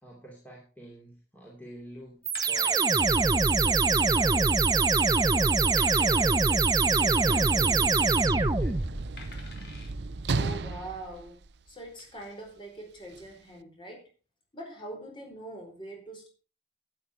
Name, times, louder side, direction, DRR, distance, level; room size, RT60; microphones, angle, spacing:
voice 1, 0.0-2.8 3.1-7.9 8.5-8.8, right 1 dB, 10° left, 2.7 m, -47 dB
sound 1, 1.7-1.9 2.3-3.1 3.4-3.6 3.8-3.9 4.5-5.0 5.8-6.5 7.8-8.2 9.2-9.9 10.5-10.6, left 4 dB, 65° left, 3.4 m, -47 dB
sound 2, 2.2-9.1, right 3 dB, 20° right, 0.6 m, -23 dB
Sliding door / Slam, 6.8-12.2 13.1-13.3, right 3 dB, 80° right, 0.6 m, -35 dB
voice 2, 10.3-11.4 11.7-14.1 14.5-16.3, right 1 dB, 25° left, 4.5 m, -43 dB
12.0 x 9.4 x 4.5 m
head